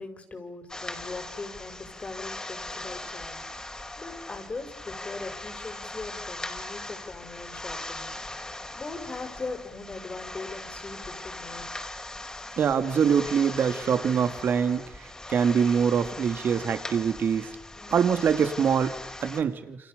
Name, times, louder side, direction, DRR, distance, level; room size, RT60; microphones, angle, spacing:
voice 1, 0.0-3.4 4.0-8.1 8.7-11.8 17.7-18.0, left 3 dB, 35° left, 6 dB, 6.3 m, -40 dB
sound 1, 0.7-19.4, left 2 dB, 20° left, 4.7 m, -40 dB
voice 2, 12.6-17.5 17.9-19.8, right 7 dB, 60° right, 9 dB, 2.6 m, -24 dB
29.0 x 27.5 x 6.9 m, 0.90 s
supercardioid pair, 55°, 4 cm